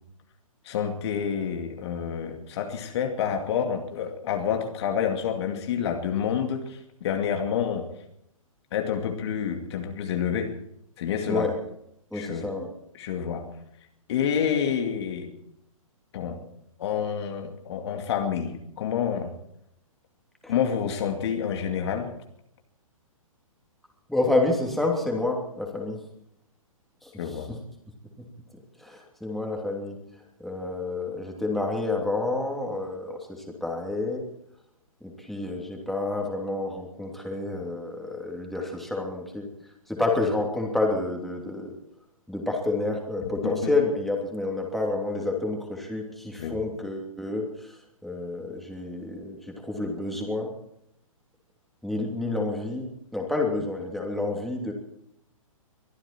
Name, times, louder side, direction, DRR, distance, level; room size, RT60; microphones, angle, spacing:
voice 1, 0.6-7.9 8.7-10.5 11.0-11.5 12.1-12.5 13.0-13.5 14.1-15.3 16.1-16.4 16.8-19.3 20.5-22.1 27.2-27.5 43.2-43.6 46.4-46.6, left 8 dB, 50° left, 4 dB, 2.4 m, -28 dB
voice 2, 12.1-12.7 20.4-20.5 24.1-26.0 27.0-27.6 28.2-28.3 28.8-30.0 30.4-34.2 35.0-39.5 39.9-41.7 42.3-50.5 51.8-54.7, left 2 dB, ahead, 0 dB, 3.1 m, -29 dB
23.5 x 13.0 x 4.5 m, 0.74 s
figure-of-eight pair, 125°, 18 cm